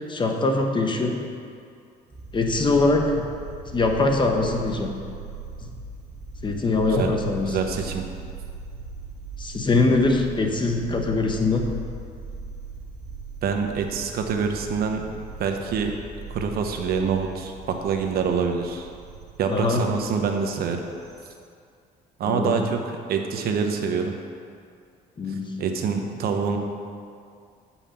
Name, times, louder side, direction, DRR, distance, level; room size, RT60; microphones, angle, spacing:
voice 1, 0.1-1.3 2.3-3.2 3.7-4.9 5.6-5.7 6.4-7.6 9.4-11.8 19.5-20.0 22.3-22.7 25.2-25.4, left 3 dB, 30° left, 3 dB, 1.0 m, -23 dB
sound 1, 2.1-21.3, right 4 dB, 40° right, 1.7 m, -39 dB
voice 2, 7.5-8.1 13.4-15.1 15.4-15.9 16.3-18.9 19.4-20.8 22.2-24.1 25.6-26.6, right 6 dB, 65° right, 4 dB, 0.9 m, -26 dB
8.4 x 5.7 x 5.7 m, 2.3 s
cardioid pair, 110°, 17 cm